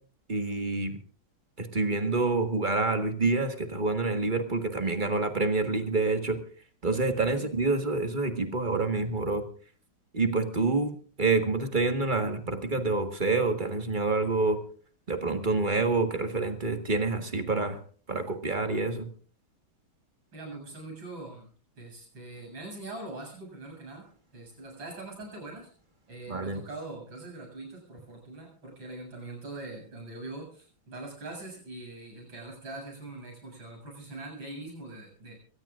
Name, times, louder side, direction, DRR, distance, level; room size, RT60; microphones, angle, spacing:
voice 1, 0.3-1.0 1.6-6.4 6.8-9.4 10.1-14.6 15.1-17.8 18.1-19.1 26.3-26.6, right 3 dB, 25° right, 6 dB, 1.6 m, -27 dB
voice 2, 20.3-21.5 21.8-25.7 26.1-35.4, right 2 dB, 70° right, 1 dB, 8.4 m, -42 dB
23.0 x 18.0 x 2.5 m, 0.43 s
omnidirectional pair, 2.2 m